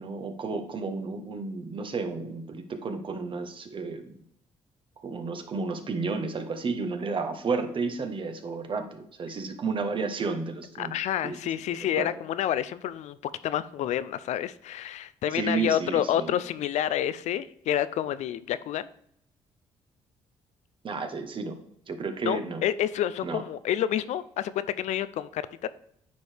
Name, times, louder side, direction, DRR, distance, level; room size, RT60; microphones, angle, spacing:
voice 1, 0.0-4.2 5.0-10.9 11.2-11.4 12.0-12.1 15.3-16.4 20.8-21.6 21.9-22.7 23.2-23.4, right 4 dB, 45° right, 7 dB, 1.0 m, -32 dB
voice 2, 10.8-18.9 22.2-25.7, left 11 dB, 70° left, 15 dB, 0.4 m, -29 dB
9.4 x 4.6 x 3.4 m, 0.70 s
cardioid pair, 80°, 12 cm